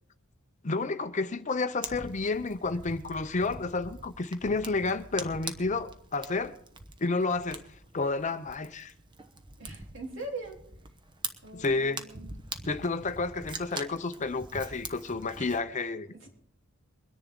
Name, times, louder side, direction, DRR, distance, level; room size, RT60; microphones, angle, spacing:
voice 1, 0.6-6.6 7.0-7.6 7.9-8.9 11.5-12.0 12.6-16.1, left 3 dB, 35° left, 0.6 m, -30 dB
Fire, 1.8-15.6, right 3 dB, 20° right, 0.9 m, -44 dB
voice 2, 9.6-10.6 11.4-12.3 16.2-16.3, right 2 dB, 60° right, 3.6 m, -41 dB
23.0 x 10.5 x 3.8 m
head